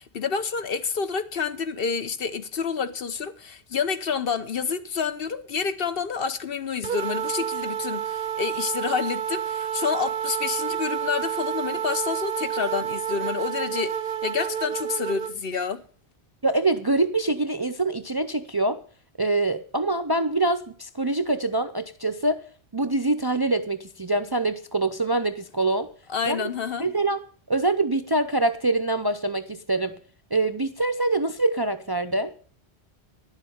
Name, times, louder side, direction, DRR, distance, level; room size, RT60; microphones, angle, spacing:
voice 1, 0.0-13.9 14.2-15.8 26.1-26.9, left 6 dB, 60° left, 1.1 m, -28 dB
sound 1, 6.8-15.3, right 9 dB, 60° right, 0.8 m, -29 dB
voice 2, 16.4-18.8 19.2-22.4 22.7-25.9 26.2-26.4 26.8-30.0 30.3-32.3, right 2 dB, 30° right, 0.5 m, -25 dB
11.0 x 7.4 x 7.8 m
omnidirectional pair, 1.1 m